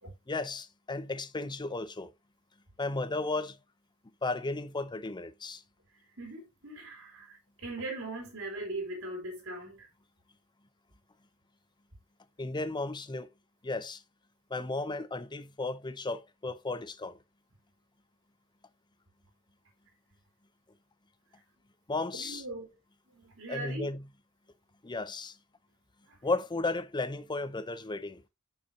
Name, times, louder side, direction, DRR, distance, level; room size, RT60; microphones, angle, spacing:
voice 1, 0.3-2.1 2.8-3.6 4.2-5.6 12.4-13.3 13.6-14.0 14.5-17.2 21.9-22.4 23.5-24.0 24.8-25.3 26.2-28.2, left 3 dB, 20° left, 0.6 m, -34 dB
voice 2, 6.2-9.9 22.1-22.7 23.1-23.8 26.1-26.2, right 2 dB, 60° right, 3.5 m, -40 dB
8.5 x 5.9 x 2.7 m
head